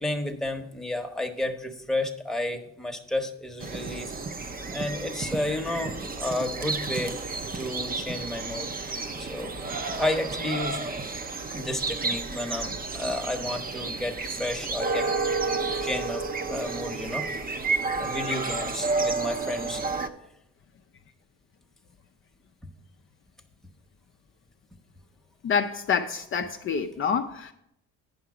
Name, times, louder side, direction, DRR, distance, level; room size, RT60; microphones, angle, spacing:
voice 1, 0.0-4.1 4.7-7.2 7.5-9.5 10.0-10.8 11.5-15.1 15.5-17.3 18.0-19.8, left 1 dB, ahead, 3 dB, 0.9 m, -32 dB
sound 1, 3.6-20.1, right 3 dB, 30° right, 0.7 m, -31 dB
voice 2, 25.4-27.5, left 6 dB, 45° left, 5 dB, 0.5 m, -27 dB
9.4 x 5.7 x 4.8 m, 0.79 s
cardioid pair, 90°, 30 cm